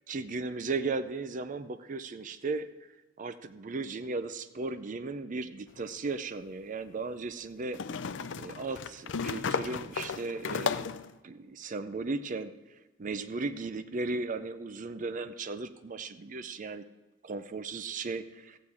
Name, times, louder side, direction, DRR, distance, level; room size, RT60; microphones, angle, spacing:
voice 1, 0.1-2.7 3.2-7.8 8.3-10.9 11.2-16.8 17.2-18.6, right 3 dB, 45° right, 10 dB, 0.5 m, -36 dB
sound 1, 5.8-5.9 7.7-11.1, left 6 dB, 70° left, 0.5 m, -34 dB
14.5 x 8.8 x 4.8 m, 1.2 s
head